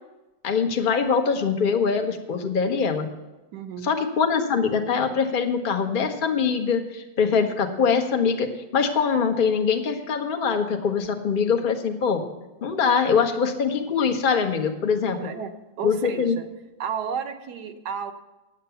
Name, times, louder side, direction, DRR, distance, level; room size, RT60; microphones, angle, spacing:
voice 1, 0.4-3.1 3.8-12.2 12.6-15.3 15.8-16.4, left 6 dB, 35° left, 4 dB, 1.0 m, -23 dB
voice 2, 3.5-3.9 15.1-16.4 16.8-18.1, right 7 dB, 65° right, 9 dB, 1.4 m, -33 dB
9.9 x 8.2 x 6.8 m, 1.0 s
omnidirectional pair, 2.0 m